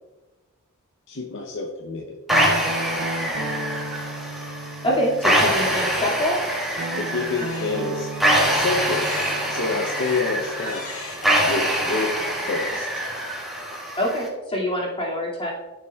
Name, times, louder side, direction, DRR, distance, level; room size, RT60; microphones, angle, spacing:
voice 1, 1.1-2.2 6.9-8.1 8.5-9.1 9.5-10.8 11.5-12.2 12.5-13.0, left 3 dB, 55° left, 1 dB, 0.7 m, -27 dB
sound 1, 2.3-14.3, equal, ahead, 1.4 m, -25 dB
Guitar, 2.3-6.1 6.7-11.5, right 2 dB, 90° right, 0.6 m, -35 dB
voice 2, 4.8-6.4 14.0-15.5, equal, 25° left, -4 dB, 2.2 m, -25 dB
sound 2, 5.7-6.7 7.2-12.7, left 2 dB, 80° left, 1.7 m, -39 dB
13.5 x 5.9 x 2.3 m, 1.2 s
head